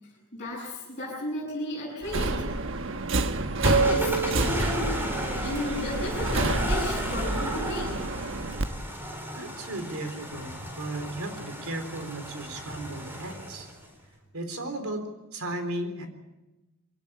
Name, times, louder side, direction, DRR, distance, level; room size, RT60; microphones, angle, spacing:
voice 1, 0.3-2.5 3.6-4.9 5.4-8.0, left 1 dB, 35° left, -8 dB, 7.9 m, -34 dB
Subway metro underground, 2.0-8.7, right 3 dB, 60° right, 1.3 m, -28 dB
sound 1, 3.6-13.9, equal, 10° right, 4.1 m, -34 dB
voice 2, 9.3-13.7 14.3-15.0 15.3-16.1, right 1 dB, 80° right, 7 dB, 3.9 m, -35 dB
23.0 x 18.0 x 8.9 m, 1.0 s
head